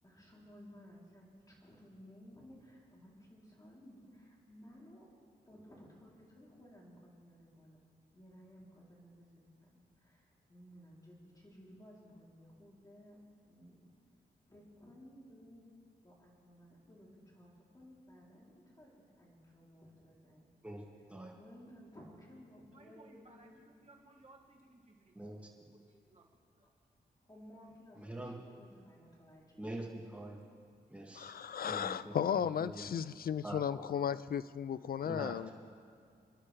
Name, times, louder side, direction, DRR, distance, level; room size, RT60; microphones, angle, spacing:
voice 1, 0.0-5.1 5.5-7.8 8.1-13.1 13.5-13.9 14.4-15.7 16.0-20.5 21.3-23.7 27.2-29.7, equal, 20° left, -5 dB, 3.5 m, -57 dB
voice 2, 22.7-26.2 26.5-26.7, right 2 dB, 40° right, -1 dB, 2.1 m, -62 dB
voice 3, 27.9-28.4 29.6-30.4 30.9-31.3 31.6-33.0 33.4-33.9 35.0-35.4, right 1 dB, 5° right, -3 dB, 2.3 m, -44 dB
voice 4, 31.2-35.5, left 8 dB, 60° left, 16 dB, 0.4 m, -35 dB
27.0 x 11.0 x 3.4 m, 2.4 s
wide cardioid pair, 100°, 18 cm